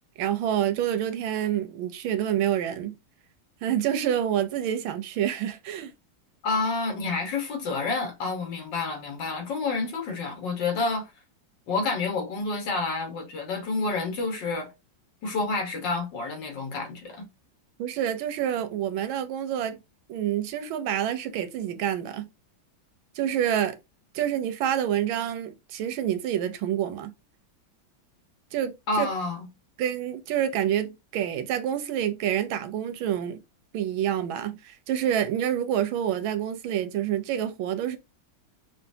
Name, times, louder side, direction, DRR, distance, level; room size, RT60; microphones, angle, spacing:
voice 1, 0.2-3.0 3.6-5.9 17.8-19.8 20.1-22.3 23.1-23.8 24.1-27.1 28.5-29.1 29.8-33.4 33.7-38.0, right 10 dB, 85° right, 1.5 m, -27 dB
voice 2, 6.4-11.1 11.7-14.7 15.2-17.3 28.9-29.5, left 3 dB, 65° left, 1.9 m, -29 dB
5.9 x 2.5 x 2.7 m
omnidirectional pair, 2.2 m